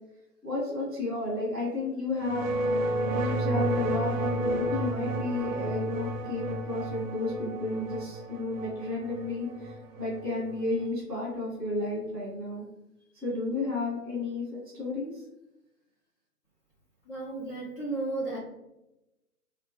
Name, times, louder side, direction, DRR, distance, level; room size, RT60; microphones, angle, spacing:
voice 1, 0.4-2.5 3.1-12.7 13.1-15.2, left 2 dB, ahead, -9 dB, 0.7 m, -32 dB
sound 1, 2.2-10.8, right 1 dB, 60° right, 0.5 m, -31 dB
voice 2, 17.1-18.4, right 2 dB, 35° left, -6 dB, 0.5 m, -33 dB
3.0 x 2.2 x 2.9 m, 0.92 s
hypercardioid pair, 160°, 47 cm